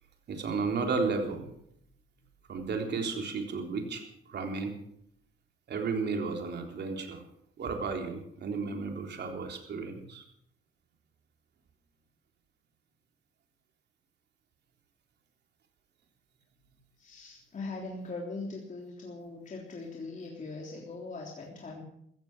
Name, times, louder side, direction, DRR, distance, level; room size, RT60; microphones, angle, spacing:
voice 1, 0.3-1.5 2.5-4.7 5.7-7.2 7.6-10.2, right 4 dB, 60° right, 3 dB, 3.8 m, -33 dB
voice 2, 17.0-21.8, left 3 dB, 40° left, -1 dB, 3.5 m, -41 dB
15.5 x 15.0 x 6.2 m, 0.72 s
cardioid pair, 90°, 20 cm